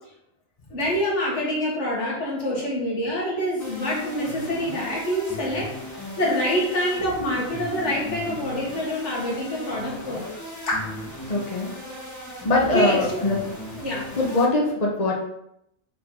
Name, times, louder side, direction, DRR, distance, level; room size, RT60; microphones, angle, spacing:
voice 1, 0.7-5.7 6.2-10.2 10.6-10.8 12.6-13.2 13.7-14.1, equal, 80° left, -4 dB, 2.0 m, -26 dB
sound 1, 3.6-14.5, left 1 dB, 15° left, 1.6 m, -37 dB
voice 2, 11.2-11.7 12.4-13.4 14.1-15.1, left 2 dB, 35° left, -2 dB, 1.1 m, -22 dB
6.9 x 5.0 x 3.8 m, 0.80 s
omnidirectional pair, 1.2 m